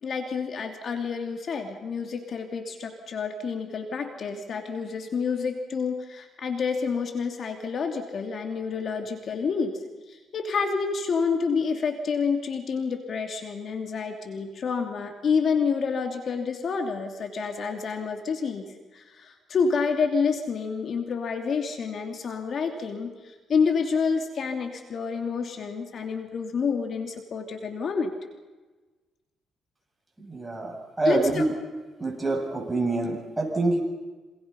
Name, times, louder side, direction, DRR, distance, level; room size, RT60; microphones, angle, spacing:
voice 1, 0.0-9.8 10.1-18.7 18.9-28.1 31.0-31.5, left 5 dB, 55° left, 5 dB, 2.9 m, -28 dB
voice 2, 30.2-30.7 31.0-31.5 32.0-33.8, right 2 dB, 15° right, 1 dB, 7.6 m, -26 dB
28.0 x 26.5 x 5.7 m, 1.2 s
cardioid pair, 90°, 0 cm